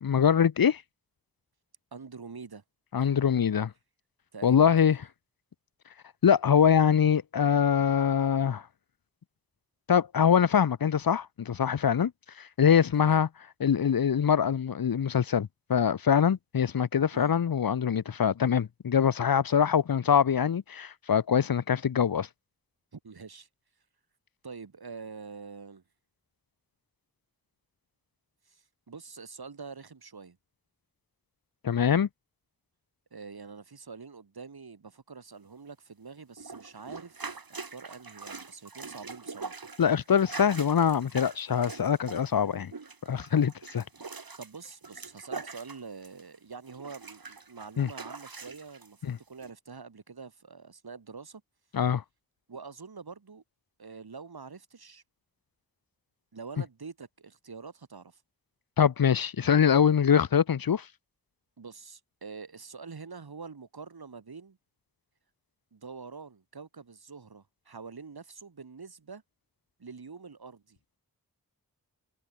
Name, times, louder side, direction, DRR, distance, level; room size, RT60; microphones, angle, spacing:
voice 1, 0.0-0.8 2.9-3.7 4.4-5.0 6.2-8.6 9.9-12.1 12.4-13.3 13.6-22.3 31.6-32.1 39.8-42.7 43.1-43.8 47.8-47.9 49.0-49.2 51.7-52.0 58.8-60.8, left 8 dB, 70° left, 0.8 m, -24 dB
voice 2, 1.9-2.6 4.3-4.9 12.9-13.2 17.1-17.4 22.9-23.5 24.4-25.8 28.5-30.4 33.1-39.7 44.4-51.4 52.5-53.4 53.8-55.0 56.3-58.2 61.6-64.6 65.7-69.2 69.8-70.8, right 5 dB, 85° right, 5.7 m, -45 dB
sound 1, 36.4-46.4 46.7-48.9 49.4-49.5, right 4 dB, 70° right, 4.5 m, -43 dB
cardioid pair, 45°, 36 cm